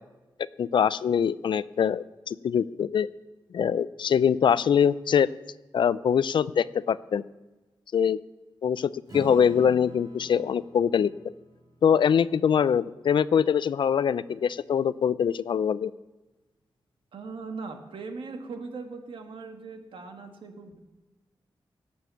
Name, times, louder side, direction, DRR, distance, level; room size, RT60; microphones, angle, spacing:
voice 1, 0.6-3.1 3.5-5.3 5.7-7.2 7.9-8.2 8.6-11.1 11.8-15.9, left 7 dB, 65° left, 18 dB, 0.4 m, -23 dB
Acoustic guitar / Strum, 9.1-13.9, right 1 dB, 50° right, 2.8 m, -46 dB
voice 2, 17.1-20.8, right 4 dB, 75° right, 5 dB, 1.7 m, -39 dB
17.5 x 7.0 x 7.0 m, 1.1 s
wide cardioid pair, 135°, 9 cm